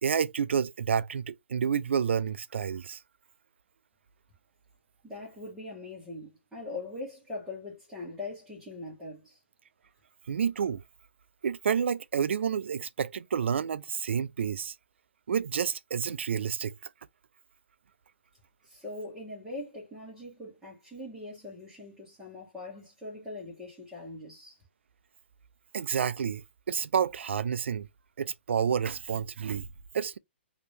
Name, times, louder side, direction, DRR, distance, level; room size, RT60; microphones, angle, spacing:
voice 1, 0.0-3.0 10.3-10.8 11.4-14.7 15.3-16.7 25.7-27.9 28.2-29.7 29.9-30.2, right 7 dB, 75° right, 0.4 m, -29 dB
voice 2, 5.0-9.4 18.6-24.6, left 2 dB, 5° right, 1.5 m, -42 dB
3.0 x 2.8 x 3.2 m
hypercardioid pair, 150°, 6 cm